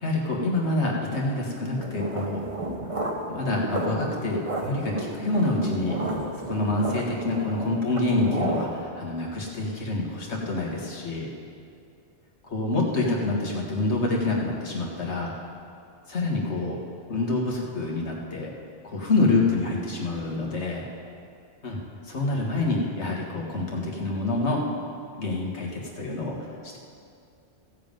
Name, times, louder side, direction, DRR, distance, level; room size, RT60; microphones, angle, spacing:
voice 1, 0.0-2.4 3.3-6.0 6.5-11.3 12.5-15.3 16.1-16.8 17.1-18.5 18.8-20.9 21.6-21.8 22.1-24.6 25.2-26.8, left 2 dB, 85° left, -2 dB, 2.0 m, -27 dB
sound 1, 1.8-8.9, right 2 dB, 30° right, 1.0 m, -32 dB
16.0 x 7.5 x 5.3 m, 2.4 s
omnidirectional pair, 1.1 m